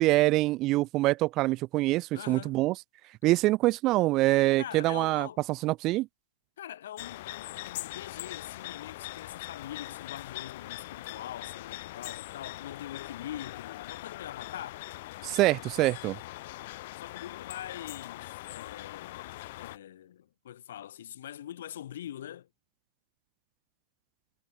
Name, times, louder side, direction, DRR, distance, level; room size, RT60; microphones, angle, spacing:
voice 1, 0.0-2.7 3.2-6.1 15.2-16.2, right 18 dB, 30° right, 0.6 m, -25 dB
voice 2, 2.1-2.6 4.6-5.4 6.6-14.9 17.0-22.5, left 11 dB, 65° left, 4.2 m, -43 dB
sound 1, 7.0-19.8, left 18 dB, 50° left, 4.9 m, -42 dB
hypercardioid pair, 145°, 0 cm